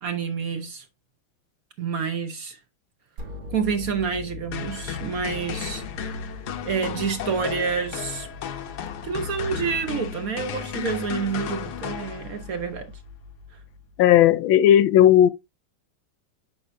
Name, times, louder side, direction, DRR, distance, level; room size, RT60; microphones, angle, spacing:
voice 1, 0.0-0.9 1.8-2.6 3.5-5.8 6.6-8.3 9.0-12.9 13.5-13.6, right 6 dB, 55° right, 1.1 m, -28 dB
sound 1, 3.2-14.1, left 3 dB, 85° right, 2.6 m, -42 dB
sound 2, 4.5-12.6, left 8 dB, 65° left, 1.2 m, -34 dB
voice 2, 14.0-15.3, left 11 dB, 80° left, 1.4 m, -15 dB
7.9 x 6.0 x 2.6 m
omnidirectional pair, 2.2 m